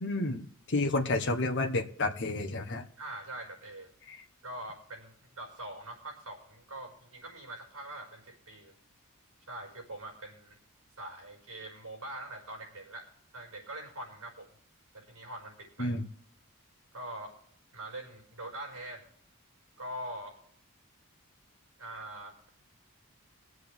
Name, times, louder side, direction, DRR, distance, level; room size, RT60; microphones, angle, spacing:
voice 1, 0.0-2.8 4.1-4.2 15.8-16.0, left 2 dB, 55° left, 3 dB, 1.1 m, -30 dB
voice 2, 3.0-3.9 4.4-8.7 9.5-10.6 11.0-14.5 14.9-16.0 16.9-17.3 17.7-19.1 19.8-20.3 21.8-22.5, right 1 dB, 80° right, 1 dB, 5.4 m, -43 dB
23.5 x 7.8 x 3.5 m, 0.67 s
head